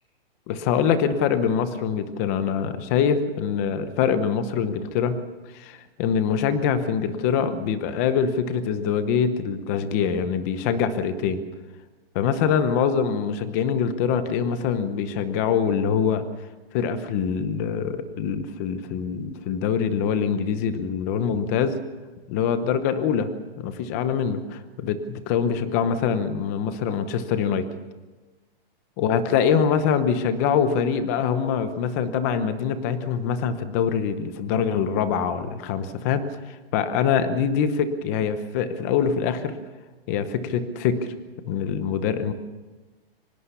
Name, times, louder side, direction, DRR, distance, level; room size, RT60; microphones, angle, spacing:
voice 1, 0.5-5.2 5.5-11.4 12.1-16.2 16.7-21.8 22.3-27.7 29.0-39.6 40.1-41.0 41.4-42.3, left 7 dB, 15° left, 11 dB, 0.9 m, -24 dB
24.5 x 19.5 x 7.0 m, 1.2 s
hypercardioid pair, 180°, 29 cm